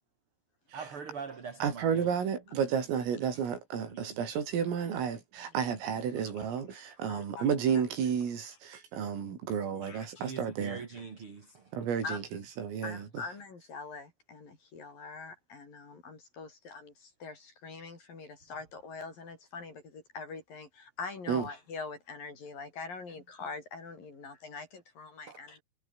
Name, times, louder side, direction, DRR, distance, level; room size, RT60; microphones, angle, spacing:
voice 1, 0.7-2.1 3.9-4.3 10.1-11.7 25.3-25.5, right 5 dB, 35° right, 2.8 m, -43 dB
voice 2, 1.6-10.8 11.7-13.3 21.3-21.5, right 7 dB, 75° right, 7.2 m, -32 dB
voice 3, 7.1-7.4 9.8-10.1 12.0-12.2 12.8-16.9 17.2-25.6, left 4 dB, 45° left, 6.6 m, -43 dB
omnidirectional pair, 6.0 m